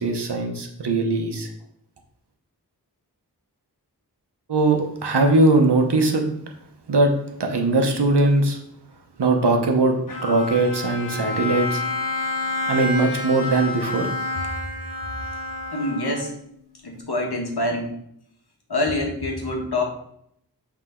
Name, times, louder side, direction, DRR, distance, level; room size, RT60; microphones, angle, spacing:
voice 1, 0.0-1.5 4.5-6.2 6.9-7.1 7.4-8.6 9.2-9.9 10.2-11.8 12.7-14.1, right 2 dB, 85° right, 3 dB, 1.0 m, -20 dB
Bowed string instrument, 10.1-16.5, left 2 dB, 55° left, 1.2 m, -29 dB
voice 2, 15.7-16.3 16.8-17.9 18.7-19.8, left 1 dB, 70° left, 1 dB, 1.4 m, -25 dB
7.7 x 3.6 x 3.8 m, 0.72 s
wide cardioid pair, 60°, 40 cm